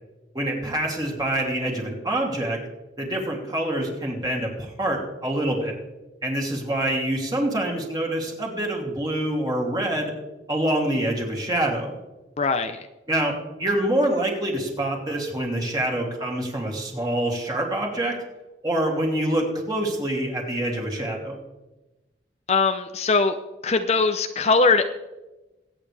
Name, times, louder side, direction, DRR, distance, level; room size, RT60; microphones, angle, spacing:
voice 1, 0.3-2.6 3.0-5.8 6.2-10.1 10.5-12.0 13.1-18.2 18.6-21.4, right 1 dB, 20° right, -1 dB, 2.8 m, -26 dB
voice 2, 12.4-12.8 22.5-23.4 23.6-24.9, left 4 dB, 35° left, 8 dB, 0.6 m, -21 dB
22.5 x 9.2 x 3.4 m, 1.1 s
head